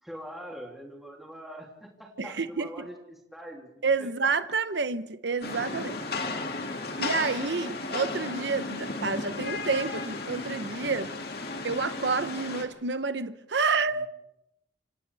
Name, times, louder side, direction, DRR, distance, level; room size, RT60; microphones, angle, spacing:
voice 1, 0.0-4.3 14.0-14.1, equal, ahead, 3.0 m, -44 dB
voice 2, 2.2-2.9 3.8-6.0 7.0-11.1 11.6-14.1, right 4 dB, 70° right, 0.9 m, -29 dB
Rain, 5.4-12.6, left 3 dB, 55° left, 2.3 m, -34 dB
29.0 x 26.5 x 3.5 m
head